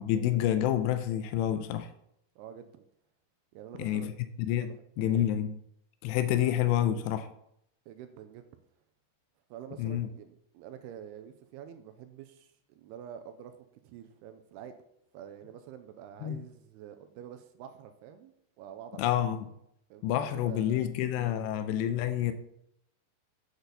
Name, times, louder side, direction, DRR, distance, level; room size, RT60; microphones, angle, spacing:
voice 1, 0.0-1.9 3.8-4.1 4.4-5.6 6.0-7.3 9.8-10.1 16.2-16.4 19.0-19.5 20.0-22.3, left 11 dB, 85° left, 9 dB, 2.8 m, -28 dB
voice 2, 2.4-2.8 3.5-4.1 4.6-4.7 5.1-5.3 7.9-8.5 9.5-14.8 15.1-19.1 19.9-20.9, right 9 dB, 85° right, 8 dB, 2.5 m, -47 dB
8.1 x 8.1 x 4.0 m, 0.74 s
omnidirectional pair, 4.9 m